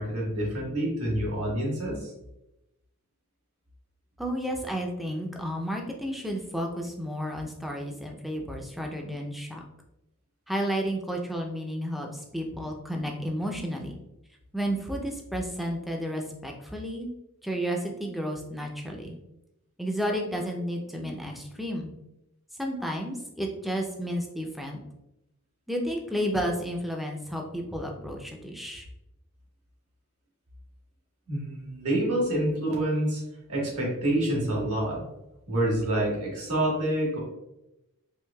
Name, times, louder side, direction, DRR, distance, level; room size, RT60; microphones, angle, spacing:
voice 1, 0.0-2.1 31.3-33.2 33.5-35.0 35.5-37.2, right 1 dB, 80° right, -3 dB, 1.4 m, -27 dB
voice 2, 4.2-9.6 10.5-14.0 14.5-17.1 17.4-19.2 19.8-21.9 22.6-24.8 25.7-28.9, equal, ahead, 1 dB, 0.4 m, -32 dB
4.6 x 2.7 x 2.2 m, 0.89 s
head